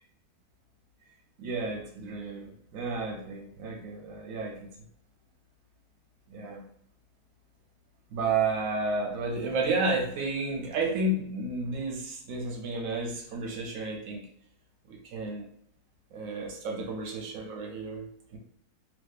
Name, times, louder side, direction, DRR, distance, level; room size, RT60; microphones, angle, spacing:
voice 1, 1.4-4.7 6.3-6.7 8.1-14.3 14.9-15.5 16.1-18.0 18.3-18.4, right 3 dB, 70° right, 1 dB, 0.9 m, -32 dB
2.6 x 2.3 x 2.2 m, 0.64 s
omnidirectional pair, 1.7 m